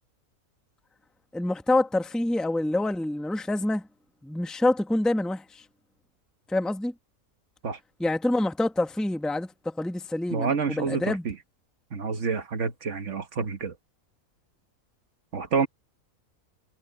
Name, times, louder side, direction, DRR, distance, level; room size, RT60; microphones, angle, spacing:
voice 1, 1.3-3.9 4.2-5.6 6.5-6.9 8.0-11.2, left 2 dB, ahead, 1.1 m, -26 dB
voice 2, 10.3-11.4 11.9-13.7 15.3-15.7, right 5 dB, 55° right, 1.6 m, -28 dB
omnidirectional pair, 1.5 m